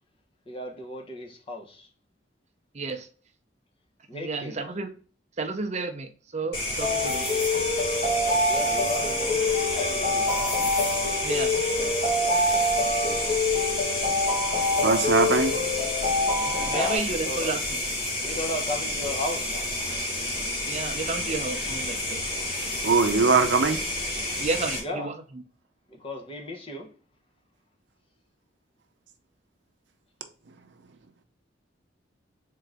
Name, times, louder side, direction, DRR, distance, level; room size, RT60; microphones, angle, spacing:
voice 1, 0.5-1.9 4.1-4.7 8.4-10.7 16.6-17.6 18.2-19.7 24.7-25.1 25.9-26.9, left 1 dB, 30° left, 0.9 m, -35 dB
voice 2, 2.7-3.1 4.1-4.9 5.4-7.3 11.2-11.6 16.4-17.6 20.7-22.2 24.4-25.1, right 3 dB, 40° right, 0.5 m, -31 dB
sound 1, 6.5-24.8, left 1 dB, 55° left, 1.6 m, -30 dB
sound 2, 6.8-17.0, left 2 dB, 75° left, 1.8 m, -26 dB
voice 3, 14.8-15.6 22.8-23.8, right 4 dB, 80° right, 0.6 m, -21 dB
3.8 x 3.8 x 3.4 m
head